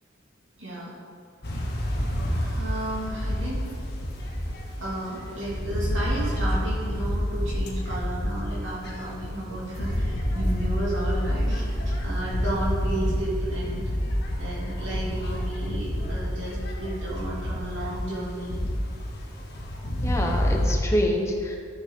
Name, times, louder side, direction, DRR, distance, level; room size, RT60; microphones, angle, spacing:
voice 1, 0.6-0.9 2.2-3.7 4.0-4.1 4.8-13.9 14.4-18.6, right 1 dB, 70° right, -7 dB, 2.5 m, -33 dB
sound 1, 1.4-20.7, equal, 55° left, 1.5 m, -28 dB
voice 2, 19.8-21.6, left 1 dB, 15° left, 1 dB, 1.0 m, -26 dB
12.5 x 6.9 x 3.7 m, 2.4 s
head